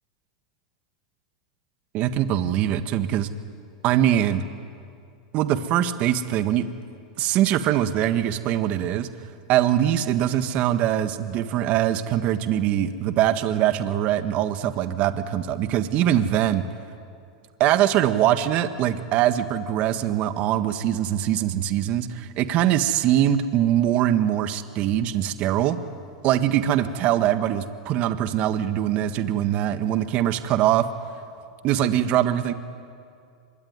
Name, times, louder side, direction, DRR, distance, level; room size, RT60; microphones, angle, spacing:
voice 1, 1.9-3.3 3.8-4.4 5.3-6.7 7.2-9.1 9.5-16.7 17.6-25.8 26.2-30.8 31.6-32.5, right 11 dB, 45° right, 10 dB, 1.5 m, -22 dB
25.5 x 22.5 x 9.6 m, 2.3 s
hypercardioid pair, 110°, 3 cm